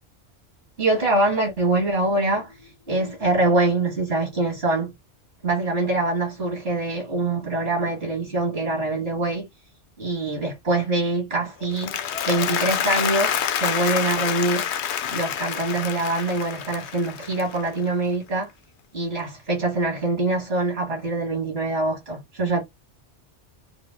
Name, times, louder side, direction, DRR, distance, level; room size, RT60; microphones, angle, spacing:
voice 1, 0.8-4.9 5.4-9.4 10.0-12.0 12.3-14.6 15.1-18.5 18.9-22.6, right 2 dB, 60° right, 2.0 m, -24 dB
Applause, 11.6-17.9, left 9 dB, 80° left, 0.9 m, -27 dB
4.9 x 2.5 x 2.4 m
omnidirectional pair, 1.1 m